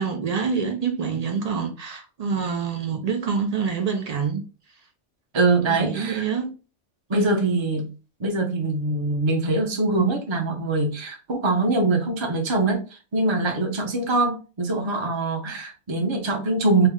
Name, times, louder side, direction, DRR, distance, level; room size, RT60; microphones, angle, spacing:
voice 1, 0.0-4.4 5.7-6.5 7.1-7.4, right 6 dB, 85° right, 0.3 m, -26 dB
voice 2, 5.3-6.3 7.1-7.9 8.2-16.9, right 2 dB, 30° right, 0.6 m, -23 dB
3.4 x 2.0 x 3.5 m
omnidirectional pair, 1.2 m